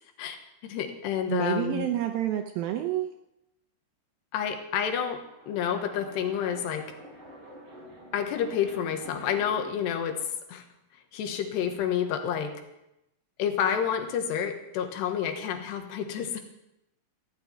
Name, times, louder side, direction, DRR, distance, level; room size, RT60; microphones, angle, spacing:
voice 1, 0.6-1.9 4.3-5.2 5.5-6.8 8.1-10.2 10.5-10.6 11.1-12.5 13.4-16.4, left 8 dB, 80° left, 6 dB, 3.4 m, -29 dB
voice 2, 1.3-3.1, right 12 dB, 80° right, 6 dB, 2.2 m, -28 dB
sound 1, 5.1-9.9, right 1 dB, 45° right, 6.8 m, -47 dB
15.5 x 6.7 x 9.5 m, 0.88 s
omnidirectional pair, 4.9 m